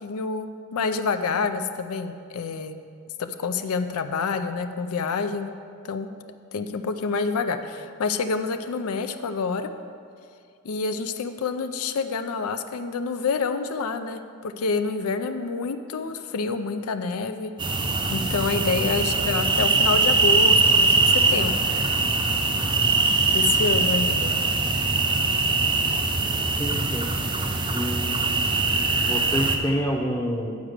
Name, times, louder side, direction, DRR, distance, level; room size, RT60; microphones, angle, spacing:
voice 1, 0.0-2.8 3.2-5.5 5.8-6.1 6.5-9.7 10.6-21.6 23.3-24.3, left 4 dB, 85° left, 9 dB, 0.4 m, -28 dB
sound 1, 17.6-29.6, right 3 dB, 20° right, 0.6 m, -22 dB
voice 2, 26.6-27.1 27.7-28.3 29.0-30.6, equal, 15° left, 0 dB, 0.7 m, -28 dB
9.4 x 4.8 x 6.6 m, 2.3 s
head